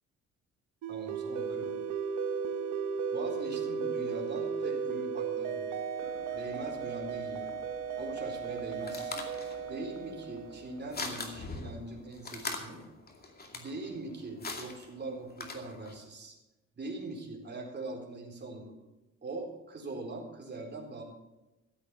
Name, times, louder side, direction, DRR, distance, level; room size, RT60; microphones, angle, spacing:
sound 1, 0.8-11.2, right 6 dB, 85° right, 1.1 m, -35 dB
voice 1, 0.9-1.8 3.1-5.8 6.3-7.5 8.0-9.2 9.7-12.8 13.5-16.4 16.7-18.7 19.2-21.0, right 2 dB, 35° right, 0 dB, 4.0 m, -42 dB
sound 2, 6.0-13.0, equal, 80° left, 3.6 m, -54 dB
sound 3, 8.3-16.0, left 3 dB, 30° left, 2.4 m, -43 dB
14.5 x 8.3 x 7.1 m, 1.0 s
cardioid pair, 90°, 30 cm